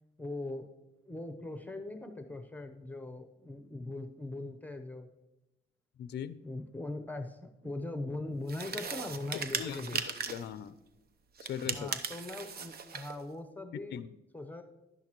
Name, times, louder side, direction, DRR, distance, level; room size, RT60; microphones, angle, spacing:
voice 1, 0.2-0.7 1.1-5.1 6.4-10.0 11.7-14.0 14.3-14.6, left 2 dB, 10° left, 6 dB, 0.8 m, -40 dB
voice 2, 6.0-6.4 9.3-10.8 11.4-11.9 13.7-14.1, left 9 dB, 60° left, 14 dB, 0.5 m, -40 dB
sound 1, 8.5-10.5 11.4-13.2, right 6 dB, 50° right, 0.8 m, -38 dB
11.0 x 10.5 x 3.0 m, 0.95 s
cardioid pair, 90°, 20 cm